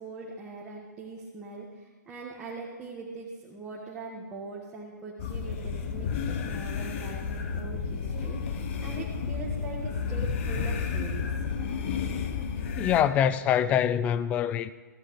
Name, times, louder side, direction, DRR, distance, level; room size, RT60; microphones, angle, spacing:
voice 1, 0.0-11.3, right 3 dB, 10° right, 1.6 m, -41 dB
sound 1, 5.2-13.0, left 6 dB, 40° left, 0.9 m, -31 dB
voice 2, 12.8-14.7, left 9 dB, 15° left, 0.3 m, -24 dB
15.0 x 13.5 x 3.2 m
hypercardioid pair, 140°, 10 cm